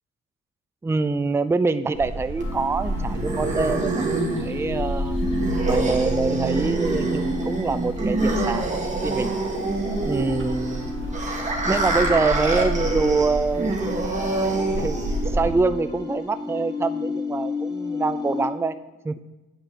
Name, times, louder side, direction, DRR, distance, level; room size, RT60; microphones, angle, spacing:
voice 1, 0.8-5.2 5.7-9.3 10.0-11.2 11.7-13.9 14.8-18.8 19.0-19.2, right 3 dB, 10° right, 12 dB, 0.4 m, -25 dB
sound 1, 1.9-15.6, right 1 dB, 40° right, 2.0 m, -31 dB
sound 2, 2.4-18.5, left 2 dB, 20° left, 3.3 m, -32 dB
sound 3, 2.4-15.4, right 2 dB, 25° right, 2.1 m, -27 dB
9.2 x 4.9 x 7.9 m, 1.1 s
cardioid pair, 90°, 30 cm